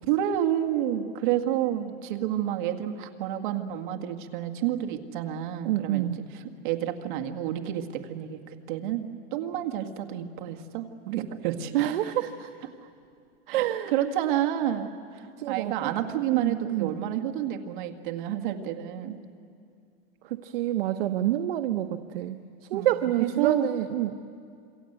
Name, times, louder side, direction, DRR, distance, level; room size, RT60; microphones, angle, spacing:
voice 1, 0.1-11.7 13.5-19.2 22.7-23.7, right 11 dB, 55° right, 5 dB, 1.9 m, -30 dB
voice 2, 5.6-6.2 11.7-12.5 13.5-13.9 15.4-15.9 16.3-16.9 20.3-22.4 22.7-24.1, right 13 dB, 70° right, 8 dB, 1.0 m, -27 dB
27.5 x 23.0 x 8.1 m, 2.3 s
supercardioid pair, 170°, 30 cm